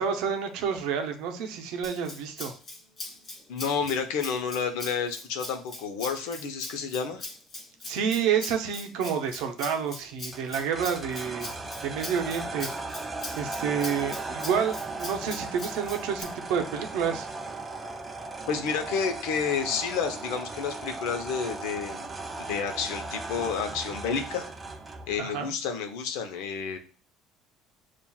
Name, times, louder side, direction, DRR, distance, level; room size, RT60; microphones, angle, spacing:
voice 1, 0.0-2.5 7.9-11.6 11.8-12.7 13.4-17.3 25.2-25.5, right 7 dB, 65° right, 5 dB, 0.7 m, -29 dB
Rattle (instrument), 1.8-16.2, left 2 dB, 25° left, 0.7 m, -41 dB
voice 2, 3.5-7.3 18.5-24.5 25.1-26.8, left 6 dB, 80° left, 6 dB, 0.7 m, -30 dB
sound 1, 10.3-25.2, right 3 dB, 15° right, 0.3 m, -37 dB
7.1 x 2.4 x 2.3 m, 0.38 s
cardioid pair, 175°, 0 cm